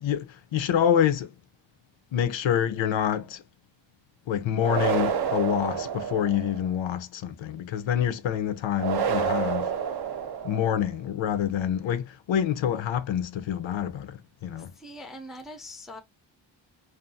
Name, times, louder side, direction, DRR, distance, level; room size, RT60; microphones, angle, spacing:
voice 1, 0.0-1.3 2.1-3.4 4.3-9.7 10.4-14.2 14.4-14.7, left 9 dB, 75° left, 0.5 m, -27 dB
sound 1, 4.6-6.7 8.8-10.9, right 7 dB, 55° right, 0.5 m, -28 dB
voice 2, 14.6-16.0, left 1 dB, ahead, 0.3 m, -42 dB
2.6 x 2.3 x 2.5 m
wide cardioid pair, 140°, 46 cm